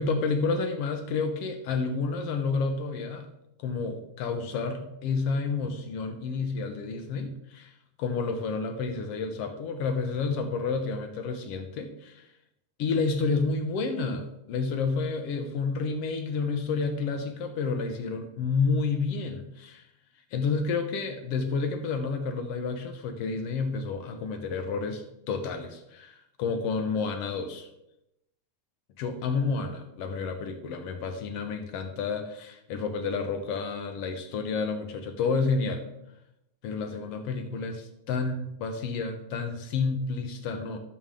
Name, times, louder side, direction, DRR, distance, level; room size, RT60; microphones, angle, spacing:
voice 1, 0.0-3.3 3.6-7.7 8.0-12.2 12.8-19.8 20.3-27.7 29.0-35.8 36.6-40.8, left 4 dB, 70° left, 6 dB, 1.5 m, -30 dB
12.5 x 7.0 x 3.7 m, 0.85 s
omnidirectional pair, 3.8 m